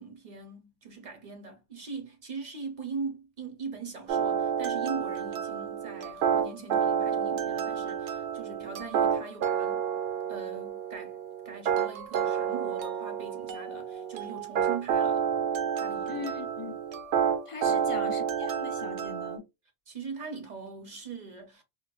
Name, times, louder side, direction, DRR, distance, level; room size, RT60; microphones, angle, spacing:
voice 1, 0.0-9.8 10.3-11.2 11.4-15.3 15.8-16.3 17.6-17.8 19.9-21.6, right 5 dB, 45° right, 0.7 m, -41 dB
sound 1, 4.1-19.4, right 8 dB, 75° right, 0.9 m, -30 dB
voice 2, 16.1-16.8 17.5-19.4, left 6 dB, 45° left, 0.4 m, -40 dB
4.5 x 2.1 x 2.3 m
omnidirectional pair, 1.2 m